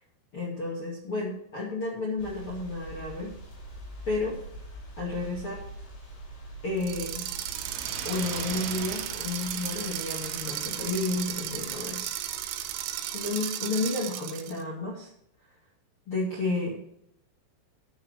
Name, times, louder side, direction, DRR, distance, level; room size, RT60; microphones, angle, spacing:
voice 1, 0.3-3.3 4.0-4.4 5.0-5.6 6.6-7.3 8.0-12.1 13.1-15.1 16.1-16.8, left 3 dB, 40° left, -5 dB, 2.0 m, -31 dB
sound 1, 2.2-13.3, right 2 dB, 60° left, 6.8 m, -45 dB
sound 2, 6.8-14.6, right 12 dB, 80° right, 3.3 m, -35 dB
sound 3, 7.1-12.1, right 5 dB, 55° right, 2.8 m, -42 dB
10.5 x 9.7 x 4.7 m, 0.74 s
omnidirectional pair, 5.8 m